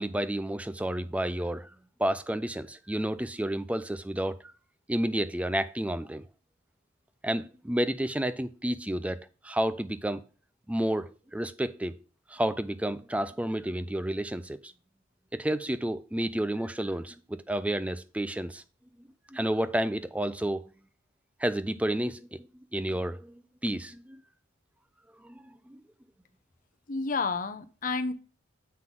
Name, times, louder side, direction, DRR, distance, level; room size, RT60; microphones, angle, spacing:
voice 1, 0.0-1.7 2.0-4.4 4.9-6.2 7.2-10.2 10.7-12.0 12.3-14.7 15.3-18.6 19.3-20.6 21.4-22.3 22.7-24.2 25.2-25.4 25.7-25.8, right 1 dB, 5° right, 0.4 m, -30 dB
voice 2, 26.9-28.1, left 4 dB, 40° left, 0.7 m, -30 dB
7.5 x 5.8 x 3.7 m
head